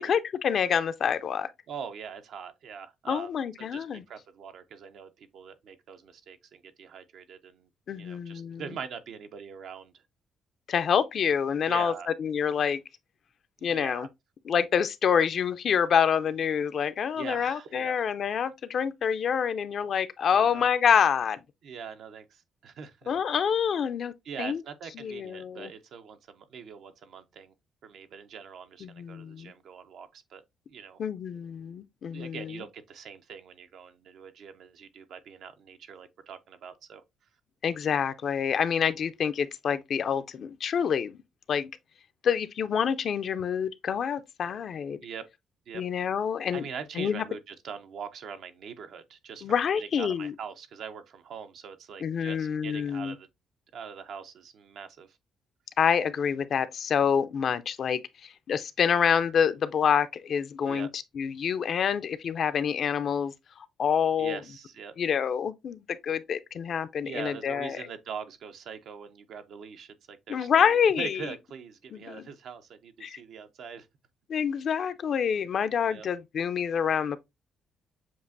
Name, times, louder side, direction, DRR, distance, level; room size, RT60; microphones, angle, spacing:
voice 1, 0.0-1.5 3.1-4.0 7.9-8.6 10.7-11.9 12.2-12.8 13.6-14.1 14.5-21.4 23.1-24.1 24.4-24.6 25.0-25.7 28.8-29.5 31.0-32.6 37.6-41.2 41.5-41.7 42.2-45.0 45.7-46.6 47.0-47.2 49.4-50.3 52.0-53.1 55.8-63.3 63.8-64.4 65.0-67.8 70.3-71.2 71.9-72.2 73.0-73.2 74.3-77.2, left 7 dB, 60° left, 0.4 m, -27 dB
voice 2, 1.7-3.3 3.6-7.7 8.0-10.0 11.7-12.1 13.6-14.1 17.2-18.1 20.3-20.7 21.6-23.2 24.2-27.5 27.8-30.4 30.7-31.0 32.1-37.0 45.0-45.2 45.7-45.8 46.5-53.3 53.7-55.2 60.6-60.9 64.2-64.9 67.0-73.9 75.9-76.1, right 6 dB, 70° right, 0.6 m, -42 dB
7.2 x 2.5 x 2.6 m
cardioid pair, 90°, 0 cm